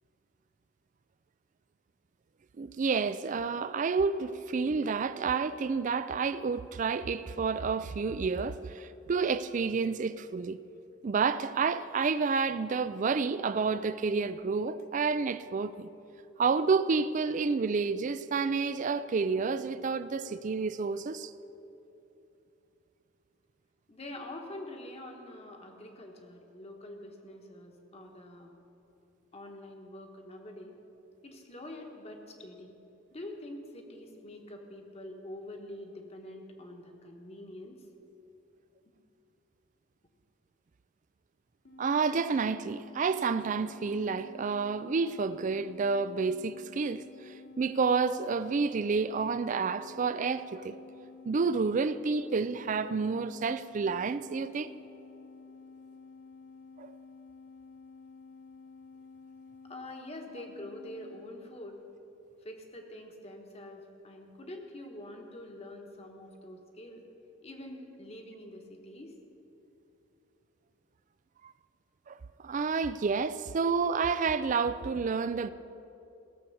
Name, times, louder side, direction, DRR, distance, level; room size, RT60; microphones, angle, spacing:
voice 1, 2.6-10.6 11.0-15.9 16.4-21.3 41.8-50.8 51.2-54.7 56.8-56.9 71.4-71.5 72.1-75.5, right 5 dB, 40° right, 0.4 m, -30 dB
voice 2, 23.9-28.5 29.3-30.8 31.2-32.7 33.1-37.8 59.6-61.8 62.4-67.0 67.4-69.1, left 1 dB, 30° left, 1.3 m, -45 dB
sound 1, 41.6-61.2, left 4 dB, 65° left, 1.9 m, -52 dB
16.5 x 6.9 x 7.0 m
head